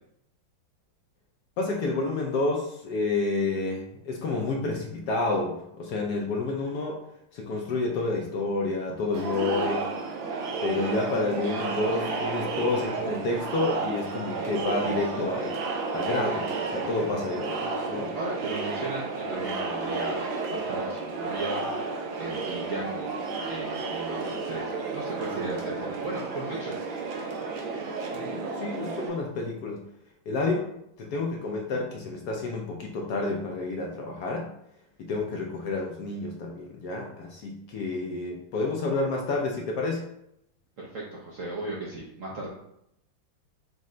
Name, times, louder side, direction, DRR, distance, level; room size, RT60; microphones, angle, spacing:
voice 1, 1.6-7.0 7.3-9.9 10.6-15.6 15.9-17.5 17.9-18.1 28.1-29.8 30.3-30.7 31.0-34.5 35.0-40.0, left 3 dB, 70° left, 0 dB, 1.0 m, -29 dB
Crowd, 9.1-29.1, right 4 dB, 90° right, 1.5 m, -32 dB
voice 2, 18.1-20.2 20.5-21.6 22.2-23.1 23.4-26.8 40.8-42.5, right 2 dB, 65° right, -4 dB, 0.8 m, -36 dB
5.3 x 2.1 x 3.7 m, 0.78 s
omnidirectional pair, 2.1 m